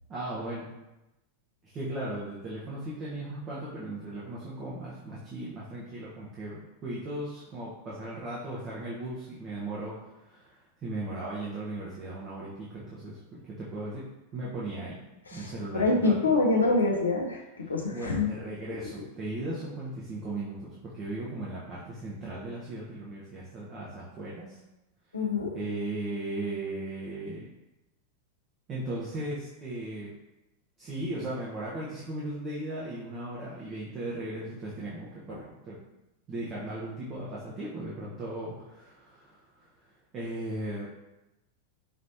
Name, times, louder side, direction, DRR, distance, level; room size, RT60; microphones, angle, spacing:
voice 1, 0.1-0.8 1.6-10.0 10.2-13.2 13.4-14.0 14.3-15.0 15.3-16.1 17.9-24.6 25.5-27.5 28.7-30.1 30.8-35.8 36.3-39.7 40.1-40.9, right 1 dB, 30° right, -7 dB, 0.9 m, -37 dB
voice 2, 15.3-17.4 17.7-18.3 25.1-25.5 35.3-35.4, left 3 dB, 75° left, 0 dB, 0.7 m, -25 dB
5.1 x 3.1 x 2.7 m, 0.98 s
figure-of-eight pair, 90°, 0 cm